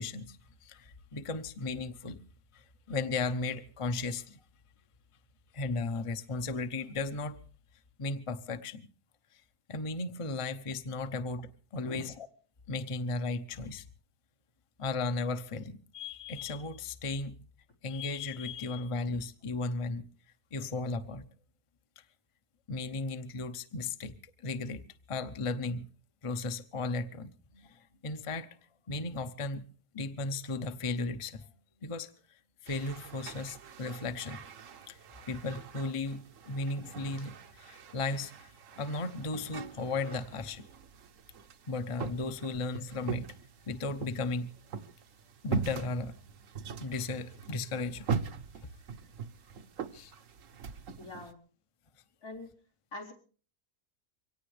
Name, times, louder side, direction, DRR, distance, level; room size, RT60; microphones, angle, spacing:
voice 1, 0.0-2.2 2.5-4.4 5.5-7.4 8.0-8.9 9.7-12.1 12.7-13.9 14.8-17.4 17.8-20.1 20.5-21.3 22.7-24.1 24.4-24.8 25.1-25.9 26.2-28.5 28.9-29.7 29.9-31.5 31.8-32.1 32.6-34.4 34.9-35.0 35.3-38.5 38.8-40.7 41.7-43.3 43.7-44.5 45.4-46.1 46.8-48.1 49.9-50.1, left 3 dB, 25° left, 0.8 m, -35 dB
sound 1, 32.7-51.3, right 5 dB, 60° right, 1.3 m, -42 dB
voice 2, 51.0-51.4 52.2-52.5 52.9-53.1, left 2 dB, 85° left, 4.8 m, -43 dB
24.0 x 18.0 x 3.3 m
omnidirectional pair, 1.6 m